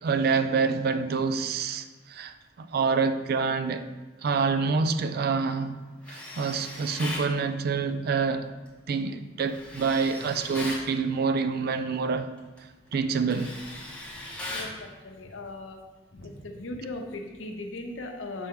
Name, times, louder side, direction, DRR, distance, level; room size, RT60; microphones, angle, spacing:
voice 1, 0.0-3.9 4.2-5.8 6.1-8.5 8.9-12.3 12.9-13.6, right 5 dB, 50° right, 0.4 m, -27 dB
Tools, 6.0-7.3 9.5-10.9 12.4-12.6 12.9-14.8, left 1 dB, 5° left, 1.0 m, -38 dB
voice 2, 14.5-15.8 16.1-18.5, left 2 dB, 75° left, 0.8 m, -38 dB
6.7 x 4.4 x 3.6 m
head